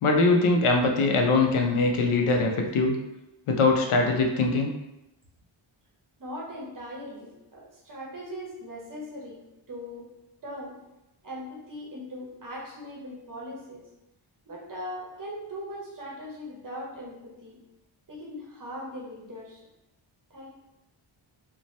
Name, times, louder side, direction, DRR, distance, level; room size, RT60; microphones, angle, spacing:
voice 1, 0.0-3.0 3.5-4.7, left 3 dB, 85° left, 2 dB, 0.6 m, -22 dB
voice 2, 6.2-9.4 9.7-10.1 10.4-10.8 11.2-13.8 14.5-17.6 18.1-19.6 20.3-20.5, equal, 40° right, -3 dB, 0.7 m, -39 dB
2.7 x 2.2 x 3.1 m, 0.93 s
wide cardioid pair, 170°, 49 cm